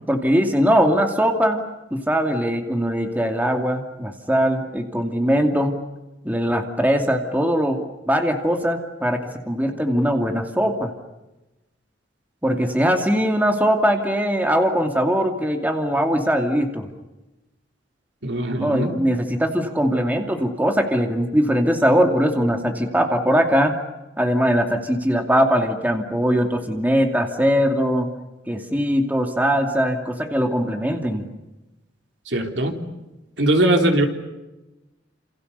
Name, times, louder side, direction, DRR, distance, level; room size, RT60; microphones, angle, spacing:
voice 1, 0.1-1.7 1.9-5.7 6.2-9.2 9.5-10.9 12.4-16.9 18.6-23.8 24.2-28.1 28.5-31.3, equal, 10° right, 4 dB, 2.6 m, -21 dB
voice 2, 18.2-18.9 32.3-32.8 33.4-34.1, right 1 dB, 70° right, 4 dB, 3.8 m, -20 dB
30.0 x 28.0 x 6.9 m, 1.0 s
head